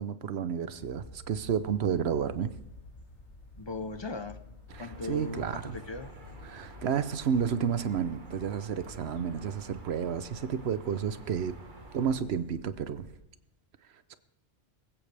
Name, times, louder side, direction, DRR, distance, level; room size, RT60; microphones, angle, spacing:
voice 1, 0.0-2.5 4.7-5.8 6.4-11.5 11.9-13.0 14.1-14.2, right 7 dB, 70° right, 14 dB, 1.0 m, -31 dB
sound 1, 0.7-13.2, left 2 dB, 90° left, 4.6 m, -50 dB
voice 2, 3.6-4.4 4.8-6.1, left 3 dB, 30° left, 11 dB, 0.7 m, -38 dB
sound 2, 4.7-12.2, right 2 dB, 45° right, 1.6 m, -50 dB
20.0 x 16.0 x 3.4 m, 0.82 s
omnidirectional pair, 1.2 m